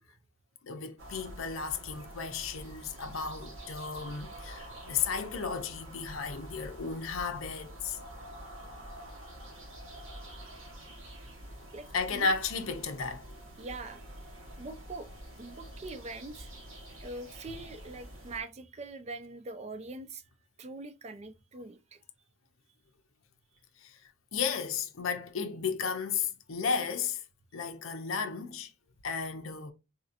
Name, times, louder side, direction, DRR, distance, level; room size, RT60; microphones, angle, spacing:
voice 1, 0.6-8.0 11.9-13.4 23.8-24.0 24.3-27.2 27.5-28.7 29.0-29.7, left 5 dB, 75° left, 0.6 m, -34 dB
sound 1, 1.0-18.4, right 1 dB, 75° right, 1.6 m, -47 dB
voice 2, 11.7-12.3 13.6-14.3 14.6-15.1 15.4-16.5 17.0-20.2 20.6-22.0, right 3 dB, 30° right, 0.4 m, -43 dB
4.2 x 2.7 x 2.5 m
head